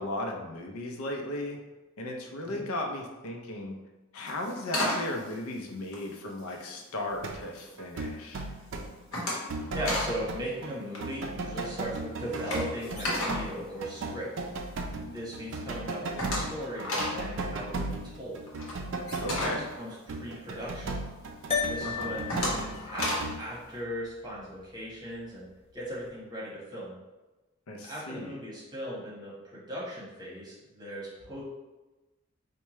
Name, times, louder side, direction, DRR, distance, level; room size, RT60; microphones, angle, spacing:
voice 1, 0.0-1.6 2.0-3.8 4.1-8.4 19.2-19.6 21.8-22.1 27.7-28.4, left 1 dB, 85° left, 2 dB, 0.6 m, -36 dB
sound 1, 4.2-6.7 7.1-7.7 8.1-8.4 8.7-10.2 10.4-10.6 10.9-14.6 15.0-15.1 15.4-15.5 15.7-20.7 21.2-21.3 21.8-23.4, left 1 dB, 70° left, 1.0 m, -34 dB
sound 2, 7.2-7.4 7.8-10.8 11.0-23.4, right 2 dB, 60° right, 0.4 m, -36 dB
voice 2, 9.7-14.3 15.0-18.4 19.3-21.0 21.7-25.4 25.7-26.9 27.8-31.4, equal, 20° right, -7 dB, 1.1 m, -38 dB
sound 3, 21.5-26.1, left 6 dB, 30° left, 0.3 m, -37 dB
4.5 x 2.2 x 3.0 m, 1.1 s
head